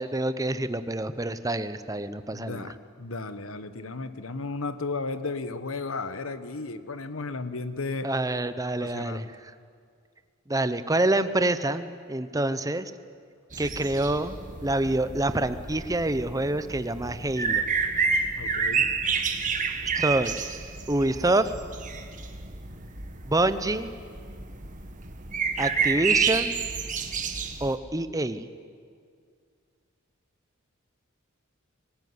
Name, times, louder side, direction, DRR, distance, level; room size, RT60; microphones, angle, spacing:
voice 1, 0.0-2.7 8.0-9.2 10.5-12.9 13.6-14.4 14.6-17.6 19.9-20.4 20.9-21.5 23.3-23.9 25.6-26.5 27.6-28.5, right 2 dB, 15° right, 12 dB, 0.8 m, -26 dB
voice 2, 2.3-2.7 3.0-8.1 8.8-9.3 18.4-18.9, left 3 dB, 70° left, 12 dB, 1.2 m, -34 dB
sound 1, 13.5-27.8, right 5 dB, 40° right, 1.7 m, -30 dB
23.0 x 20.0 x 9.6 m, 2.2 s
head